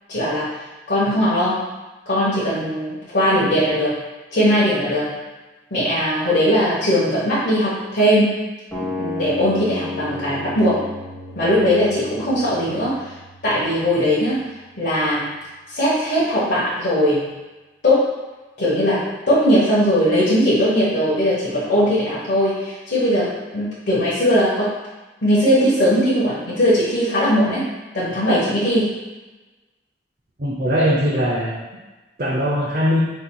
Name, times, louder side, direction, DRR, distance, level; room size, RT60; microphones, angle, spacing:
voice 1, 0.1-0.5 0.9-1.6 2.1-3.9 4.3-5.2 5.7-8.4 8.8-10.8 11.3-12.9 13.4-14.4 14.8-15.4 15.7-17.3 17.8-18.1 18.6-19.0 19.3-24.7 25.2-27.6 27.9-28.9, equal, 70° left, -9 dB, 1.3 m, -19 dB
sound 1, 8.7-14.7, left 3 dB, 10° left, 1.4 m, -33 dB
voice 2, 30.4-31.5 32.2-33.0, equal, 50° right, -5 dB, 0.6 m, -20 dB
5.2 x 4.3 x 2.3 m, 1.1 s
head